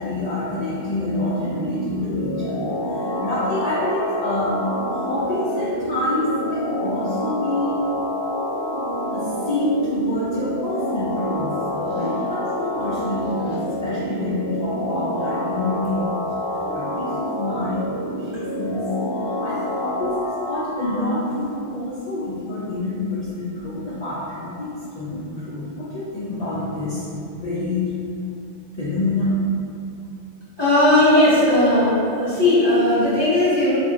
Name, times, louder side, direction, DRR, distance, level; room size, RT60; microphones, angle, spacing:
voice 1, 0.0-4.6 4.9-7.8 9.1-13.6 13.8-16.3 16.7-18.9 19.2-27.0 27.3-27.9 28.7-29.4, left 1 dB, 80° left, -10 dB, 0.3 m, -27 dB
sound 1, 1.2-21.1, left 1 dB, 60° left, 0.7 m, -27 dB
voice 2, 30.6-33.8, left 1 dB, 25° right, -12 dB, 0.8 m, -17 dB
2.4 x 2.1 x 3.5 m, 2.6 s
omnidirectional pair, 1.2 m